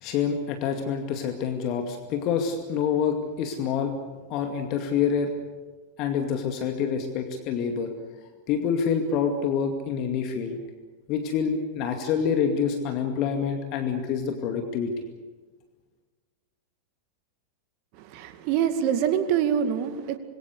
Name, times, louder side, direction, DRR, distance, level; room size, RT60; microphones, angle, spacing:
voice 1, 0.0-3.9 4.3-5.3 6.0-7.9 8.5-10.6 11.1-15.0, left 7 dB, 40° left, 5 dB, 2.3 m, -27 dB
voice 2, 18.0-20.2, right 9 dB, 45° right, 9 dB, 2.3 m, -25 dB
26.0 x 22.5 x 6.8 m, 1.4 s
figure-of-eight pair, 90°, 0 cm